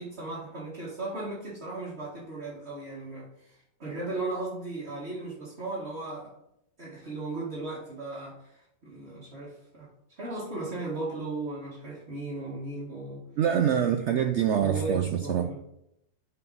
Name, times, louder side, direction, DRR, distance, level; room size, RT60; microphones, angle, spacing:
voice 1, 0.0-6.3 6.8-13.2 14.1-14.2 14.6-15.6, right 2 dB, 40° right, -8 dB, 2.0 m, -36 dB
voice 2, 13.4-15.5, right 9 dB, 80° right, 7 dB, 0.6 m, -25 dB
8.7 x 4.6 x 4.0 m, 0.80 s
omnidirectional pair, 1.7 m